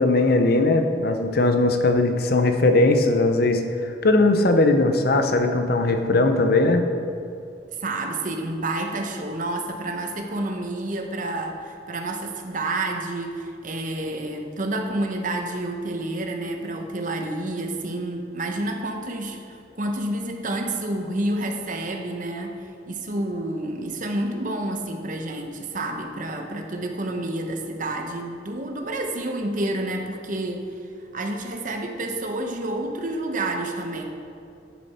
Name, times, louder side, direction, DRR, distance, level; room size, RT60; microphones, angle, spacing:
voice 1, 0.0-6.8, left 2 dB, 55° left, 6 dB, 0.7 m, -19 dB
voice 2, 7.8-22.5 22.9-30.7 31.1-34.1, right 1 dB, 45° right, 4 dB, 0.9 m, -29 dB
10.5 x 6.8 x 4.3 m, 2.6 s
head